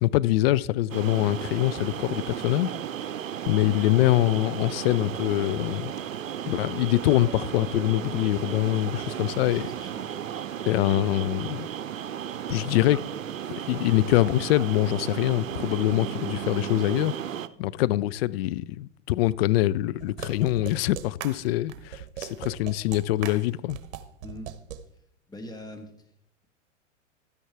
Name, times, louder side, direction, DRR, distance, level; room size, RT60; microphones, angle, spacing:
voice 1, 0.0-2.7 3.5-5.9 6.5-9.7 10.7-11.7 12.5-13.0 13.7-17.1 17.6-23.8, left 16 dB, 50° left, 0.5 m, -24 dB
sound 1, 0.9-17.5, right 9 dB, 90° right, 0.6 m, -34 dB
Piano, 7.1-9.1, right 6 dB, 30° right, 2.1 m, -49 dB
voice 2, 9.4-10.3 24.2-24.5 25.3-26.1, left 1 dB, 10° left, 1.5 m, -43 dB
sound 2, 20.0-24.8, right 10 dB, 60° right, 1.1 m, -39 dB
12.5 x 10.0 x 3.4 m
hypercardioid pair, 100°, 38 cm